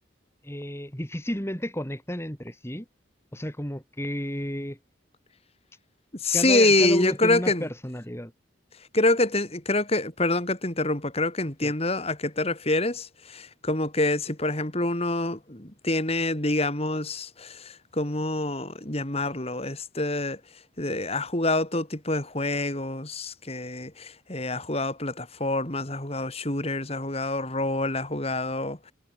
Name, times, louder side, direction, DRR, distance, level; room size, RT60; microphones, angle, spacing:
voice 1, 0.4-2.8 3.3-4.8 6.3-8.3 11.6-11.7, equal, 15° left, 4.5 m, -32 dB
voice 2, 6.2-7.7 8.9-20.4 20.8-28.9, left 2 dB, 30° left, 3.5 m, -26 dB
head